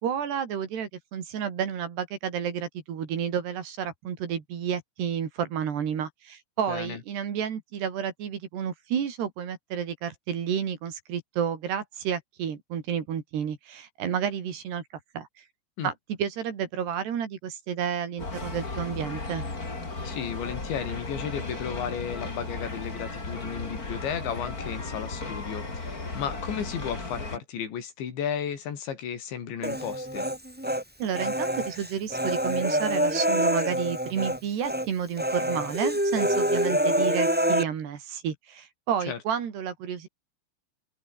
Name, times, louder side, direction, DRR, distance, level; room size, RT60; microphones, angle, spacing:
voice 1, 0.0-14.8 15.2-15.5 15.8-19.5 31.0-40.1, right 8 dB, 70° right, 5.2 m, -31 dB
voice 2, 6.7-7.0 15.8-15.9 20.0-30.3 39.1-39.2, left 8 dB, 90° left, 5.9 m, -34 dB
sound 1, 18.2-27.4, left 3 dB, 20° left, 4.3 m, -35 dB
Human voice, 29.6-30.8 31.1-34.4 34.6-34.9 35.2-37.6, equal, 5° right, 1.4 m, -26 dB
omnidirectional pair, 5.0 m